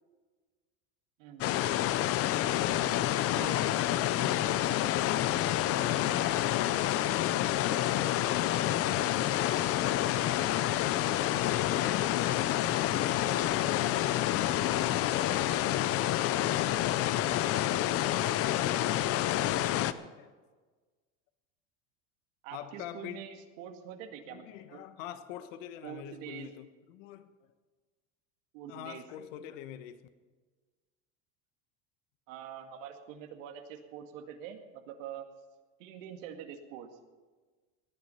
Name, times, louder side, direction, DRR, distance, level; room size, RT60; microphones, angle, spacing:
voice 1, 1.2-1.5 3.3-3.6 22.4-24.4 24.7-24.8 25.8-26.5 28.5-29.0 32.3-35.3 35.8-36.9, right 9 dB, 75° right, 5 dB, 2.1 m, -45 dB
sound 1, 1.4-19.9, left 13 dB, 35° left, 0.6 m, -28 dB
voice 2, 2.1-3.4 4.6-7.4 8.4-10.6 10.9-13.0 13.5-15.5 17.5-19.1 20.2-20.3 22.5-23.3 24.3-27.3 28.7-30.0, left 10 dB, 70° left, 10 dB, 1.4 m, -46 dB
19.0 x 11.0 x 5.7 m, 1.4 s
supercardioid pair, 130°, 39 cm